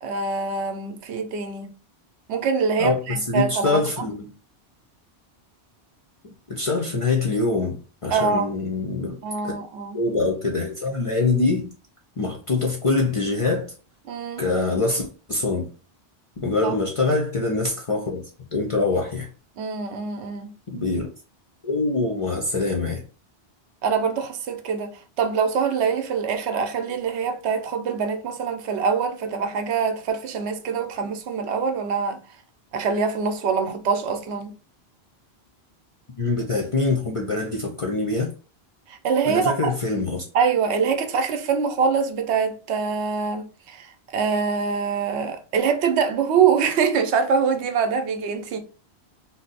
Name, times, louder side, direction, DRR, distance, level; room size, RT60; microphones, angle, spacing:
voice 1, 0.0-1.7 2.3-4.1 8.1-8.5 9.2-10.0 14.1-14.4 16.6-16.8 19.6-20.5 23.8-24.9 25.2-32.2 32.7-34.5 38.9-39.7 40.3-48.6, right 6 dB, 80° right, 0.8 m, -24 dB
voice 2, 2.8-4.3 6.2-9.2 9.4-9.5 9.9-11.7 12.2-13.7 14.4-15.7 16.4-18.2 18.5-19.3 20.7-21.1 21.6-23.0 36.2-38.3 39.3-40.2, left 3 dB, 45° left, 0.4 m, -24 dB
2.6 x 2.0 x 3.9 m
omnidirectional pair, 1.1 m